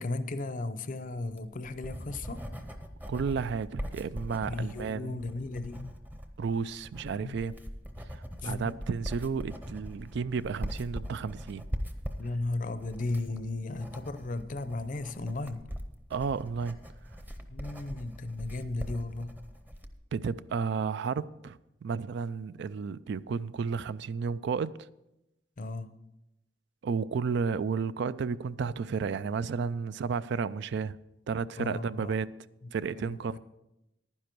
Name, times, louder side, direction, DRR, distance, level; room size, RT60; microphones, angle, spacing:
voice 1, 0.0-2.4 4.5-5.9 7.0-7.4 8.4-8.8 12.2-15.7 17.5-19.4 25.6-25.9 31.6-32.2 33.0-33.4, left 2 dB, 45° left, 0.6 m, -35 dB
Writing, 1.2-20.0, equal, 10° right, 0.7 m, -41 dB
voice 2, 3.1-5.2 6.4-7.5 8.1-11.6 16.1-16.8 20.1-24.7 26.8-31.0 31.3-32.3 32.7-33.4, right 5 dB, 65° right, 0.3 m, -32 dB
11.0 x 10.0 x 4.5 m
head